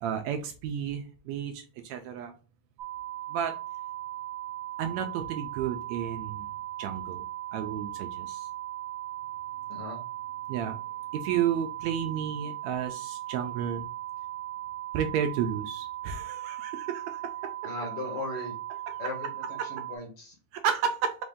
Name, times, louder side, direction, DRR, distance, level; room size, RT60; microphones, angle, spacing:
voice 1, 0.0-2.3 3.3-3.6 4.8-6.5 6.8-7.3 7.5-8.5 10.5-10.8 11.1-13.9 14.9-17.5 19.6-19.7 20.5-21.2, right 8 dB, 80° right, 5 dB, 1.7 m, -32 dB
sound 1, 2.8-20.0, right 14 dB, 60° right, 1.7 m, -38 dB
voice 2, 9.7-10.0 17.6-18.5 19.0-20.3, left 2 dB, 55° left, 1 dB, 1.8 m, -38 dB
5.1 x 2.6 x 3.5 m, 0.36 s
omnidirectional pair, 3.4 m